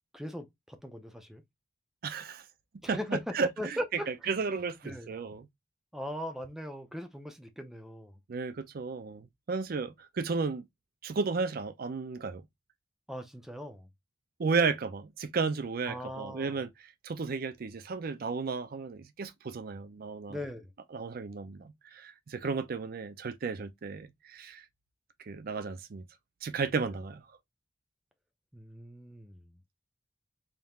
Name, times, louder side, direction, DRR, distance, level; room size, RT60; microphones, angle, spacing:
voice 1, 0.1-1.4 2.8-4.1 4.8-5.1 5.9-8.2 13.1-13.9 15.9-16.6 20.3-20.7 28.5-29.6, equal, ahead, 0.6 m, -39 dB
voice 2, 2.0-2.5 2.9-3.8 4.1-5.5 8.3-10.7 11.0-12.4 14.4-20.4 20.9-24.6 25.2-26.0 26.4-27.2, right 4 dB, 50° right, 0.4 m, -33 dB
4.2 x 3.6 x 2.3 m
head